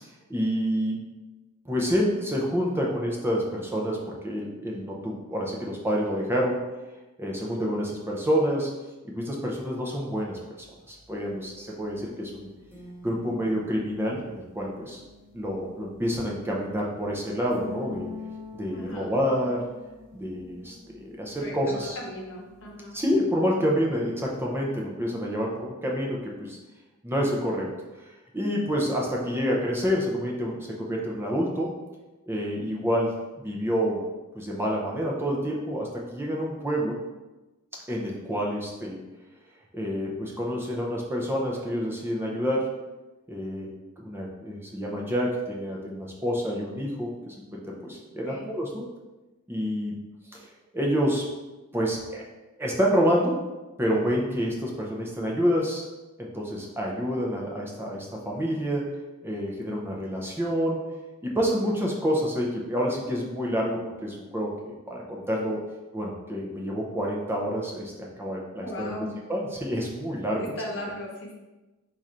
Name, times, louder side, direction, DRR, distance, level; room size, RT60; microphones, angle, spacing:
voice 1, 0.3-1.1 1.6-6.6 7.2-8.7 9.0-12.5 13.0-15.0 15.3-18.1 18.5-19.7 20.1-22.0 22.9-26.6 27.0-27.7 28.0-31.7 32.3-34.0 34.3-37.0 37.9-39.0 39.7-42.7 43.3-43.7 44.0-48.9 49.5-49.9 50.3-51.3 51.7-52.2 52.6-53.4 53.8-55.9 56.2-58.9 59.2-60.8 61.2-65.6 65.9-68.9 69.3-70.5, equal, 10° right, -2 dB, 0.6 m, -28 dB
sound 1, 10.6-23.1, left 4 dB, 5° left, 1.3 m, -46 dB
voice 2, 18.7-19.1 21.4-23.0 48.2-48.5 68.5-69.1 70.4-71.3, left 1 dB, 60° left, 0 dB, 0.9 m, -37 dB
4.7 x 2.5 x 4.2 m, 1.1 s
head